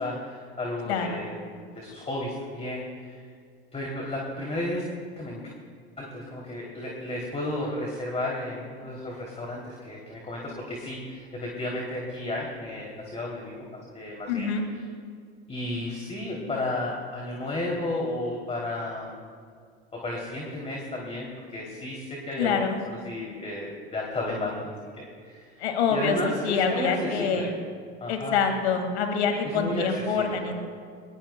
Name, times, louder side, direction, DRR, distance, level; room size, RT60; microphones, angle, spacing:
voice 1, 0.0-1.3 1.7-3.2 3.7-4.8 5.1-5.4 6.0-14.5 15.5-19.2 20.0-24.7 24.9-25.5 25.9-27.5 28.0-28.4 29.4-30.5, left 1 dB, 20° left, -2 dB, 2.9 m, -33 dB
voice 2, 0.9-1.2 14.3-14.6 22.4-22.8 25.6-26.2 26.4-27.5 28.1-30.5, left 6 dB, 80° left, 5 dB, 2.0 m, -26 dB
21.5 x 20.0 x 2.2 m, 2.1 s
hypercardioid pair, 90°, 32 cm